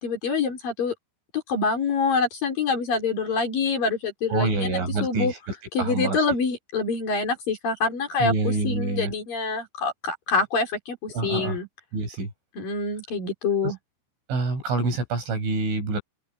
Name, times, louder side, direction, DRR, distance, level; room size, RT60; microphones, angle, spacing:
voice 1, 0.0-0.9 1.3-5.3 5.7-11.7 12.6-13.8, left 4 dB, 50° left, 5.8 m, -26 dB
voice 2, 4.3-5.4 5.8-6.2 8.2-9.1 11.1-11.6 11.9-12.3 13.6-13.7 14.3-16.0, right 3 dB, 80° right, 10.0 m, -26 dB
open air
omnidirectional pair, 5.5 m